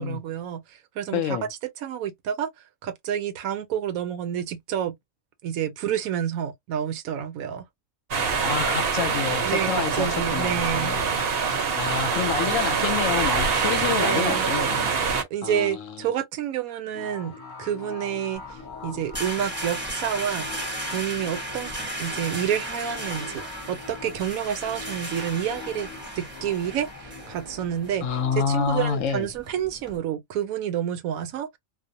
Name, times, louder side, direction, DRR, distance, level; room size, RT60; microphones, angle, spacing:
voice 1, 0.0-1.4 1.8-2.5 2.8-5.0 5.4-7.7 9.4-11.0 13.9-14.5 15.1-18.4 18.8-20.5 20.9-25.9 26.1-28.1 28.4-31.6, right 9 dB, 80° right, 1.0 m, -29 dB
voice 2, 1.1-1.5 8.4-11.0 11.7-14.9 15.4-16.1 28.0-29.3, left 7 dB, 70° left, 0.9 m, -28 dB
sound 1, 8.1-15.2, right 5 dB, 55° right, 0.7 m, -25 dB
sound 2, 16.9-30.2, left 4 dB, 40° left, 1.0 m, -42 dB
sound 3, 18.4-30.0, right 1 dB, 10° right, 0.7 m, -36 dB
2.5 x 2.0 x 2.6 m
omnidirectional pair, 1.5 m